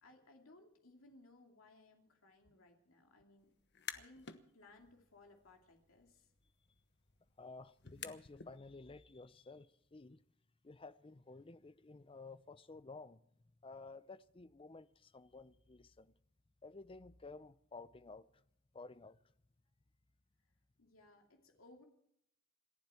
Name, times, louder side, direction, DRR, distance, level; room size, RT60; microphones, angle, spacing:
voice 1, 0.0-3.5 3.9-4.3 4.5-6.3 20.8-21.9, left 2 dB, 85° left, 2.6 m, -62 dB
sound 1, 3.6-4.4 4.8-8.6, left 8 dB, 55° left, 1.2 m, -52 dB
voice 2, 7.4-10.2 10.6-13.2 13.6-16.1 16.6-18.4 18.7-19.2, left 3 dB, 25° left, 0.6 m, -53 dB
27.5 x 11.5 x 4.4 m
head